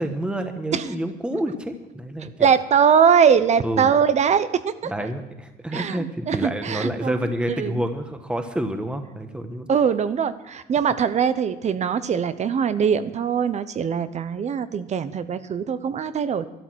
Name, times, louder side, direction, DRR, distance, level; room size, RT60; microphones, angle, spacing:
voice 1, 0.0-2.5 3.6-3.9 4.8-9.7, right 1 dB, 5° right, 7 dB, 1.2 m, -28 dB
voice 2, 2.4-4.9 5.7-7.2 7.5-7.8 9.7-16.5, right 7 dB, 40° right, 13 dB, 0.8 m, -21 dB
12.5 x 12.0 x 6.3 m, 1.1 s
cardioid pair, 110°, 17 cm